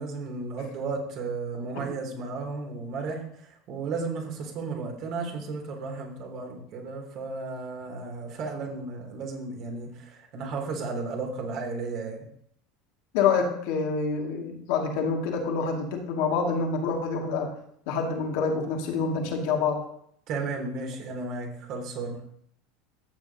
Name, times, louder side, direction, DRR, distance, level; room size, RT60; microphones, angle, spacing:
voice 1, 0.0-12.2 20.3-22.2, right 3 dB, 55° right, 2 dB, 3.1 m, -34 dB
voice 2, 13.1-17.5 17.9-19.8, left 5 dB, 70° left, 1 dB, 2.3 m, -27 dB
14.0 x 7.4 x 2.9 m, 0.68 s
hypercardioid pair, 95°, 0 cm